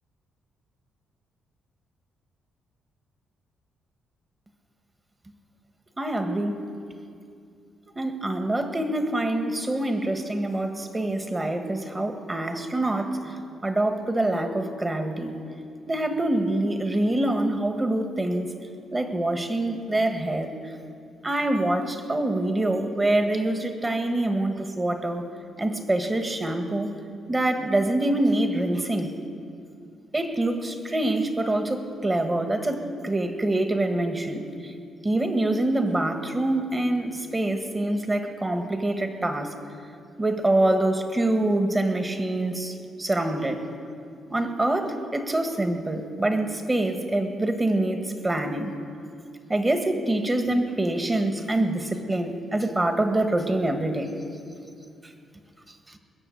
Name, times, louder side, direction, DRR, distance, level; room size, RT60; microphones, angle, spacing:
voice 1, 6.0-6.7 7.9-13.4 13.6-15.3 15.9-18.5 18.9-20.5 21.2-25.2 25.6-26.9 27.3-29.1 30.1-34.7 35.0-39.5 40.2-43.6 44.3-48.7 49.5-54.1 55.9-56.0, right 1 dB, 20° right, 6 dB, 1.6 m, -25 dB
21.0 x 7.1 x 8.5 m, 2.4 s
cardioid pair, 90°, 0 cm